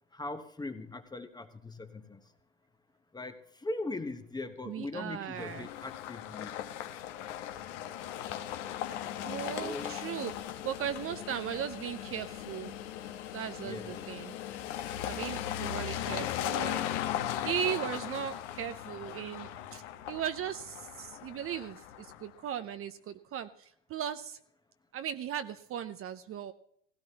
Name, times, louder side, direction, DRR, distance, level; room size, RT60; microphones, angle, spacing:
voice 1, 0.1-2.2 3.1-6.6 9.6-10.0 13.6-14.4, left 2 dB, 10° left, 9 dB, 1.1 m, -40 dB
voice 2, 4.6-5.7 9.2-10.3 10.6-12.7 13.3-14.4 15.1-16.9 17.4-24.4 24.9-26.5, right 9 dB, 35° right, 10 dB, 0.8 m, -37 dB
sound 1, 5.4-22.3, left 11 dB, 70° left, 1.3 m, -38 dB
16.5 x 16.5 x 2.9 m, 0.66 s
hypercardioid pair, 90°, 37 cm